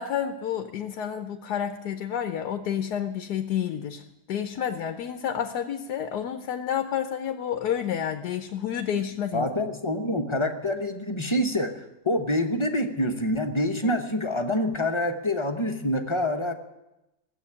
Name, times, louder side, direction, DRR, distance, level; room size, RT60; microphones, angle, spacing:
voice 1, 0.0-4.0 4.3-9.5 13.8-13.9, left 9 dB, 85° left, 7 dB, 1.4 m, -30 dB
voice 2, 9.3-16.5, left 1 dB, 25° left, 5 dB, 0.8 m, -26 dB
16.5 x 7.7 x 9.8 m, 0.95 s
omnidirectional pair, 1.7 m